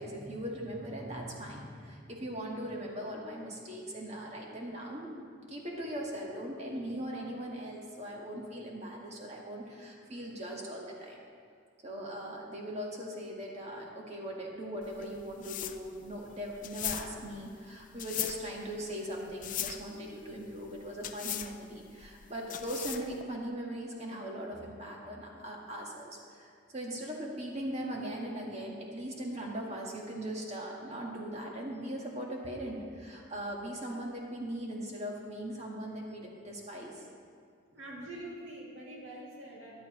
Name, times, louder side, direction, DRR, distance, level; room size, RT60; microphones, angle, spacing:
voice 1, 0.0-5.2 5.5-11.2 11.8-37.1, right 1 dB, 35° right, -2 dB, 1.7 m, -40 dB
sound 1, 14.8-23.2, left 12 dB, 40° left, 0.4 m, -39 dB
voice 2, 37.7-39.9, right 1 dB, 70° right, -5 dB, 2.6 m, -45 dB
14.0 x 11.0 x 3.2 m, 2.2 s
head